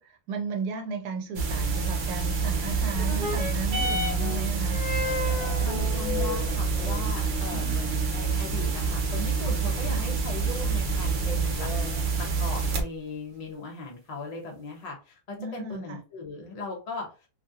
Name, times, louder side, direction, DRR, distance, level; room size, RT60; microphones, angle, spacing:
voice 1, 0.0-4.8 7.5-7.8 9.9-10.0 15.4-16.0, right 4 dB, 90° right, 1.1 m, -35 dB
sound 1, 1.4-12.8, right 4 dB, 60° right, 0.5 m, -27 dB
sound 2, 2.9-11.9 12.7-12.8, left 1 dB, 40° right, 1.0 m, -36 dB
sound 3, 4.8-7.3 7.6-7.7 8.0-8.1 8.3-8.5 9.7-9.8 11.5-12.4, left 7 dB, 75° left, 1.1 m, -38 dB
voice 2, 5.6-11.7 12.2-17.3, left 2 dB, 40° left, 0.5 m, -38 dB
2.8 x 2.4 x 2.7 m
omnidirectional pair, 1.6 m